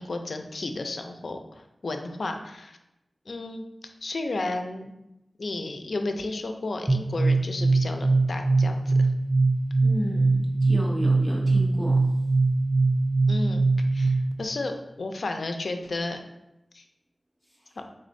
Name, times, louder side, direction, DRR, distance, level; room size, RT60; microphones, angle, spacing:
voice 1, 0.0-2.8 3.3-3.6 4.0-4.9 5.4-9.1 13.3-13.6 13.9-16.2 16.7-16.8 17.8-17.9, left 2 dB, 75° left, 5 dB, 0.4 m, -33 dB
sound 1, 6.9-14.4, right 3 dB, 20° right, 0.4 m, -22 dB
voice 2, 9.8-12.1 17.6-17.8, equal, ahead, -3 dB, 0.9 m, -33 dB
4.1 x 3.7 x 2.6 m, 0.89 s
wide cardioid pair, 70°, 0 cm